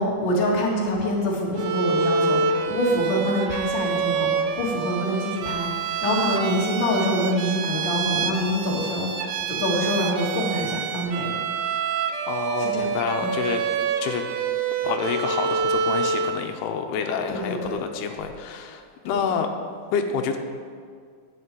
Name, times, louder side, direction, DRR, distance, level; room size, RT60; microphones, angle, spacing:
voice 1, 0.0-9.1 9.5-11.4 12.6-12.9 13.2-13.3 17.3-17.8 19.0-19.2, left 1 dB, 35° left, -4 dB, 2.3 m, -25 dB
Bowed string instrument, 1.6-16.4, right 6 dB, 85° right, 1.7 m, -27 dB
voice 2, 12.3-13.6 14.0-14.2 14.8-19.5 19.9-20.4, left 7 dB, 90° left, 5 dB, 2.7 m, -28 dB
11.0 x 6.7 x 8.5 m, 2.1 s
omnidirectional pair, 4.5 m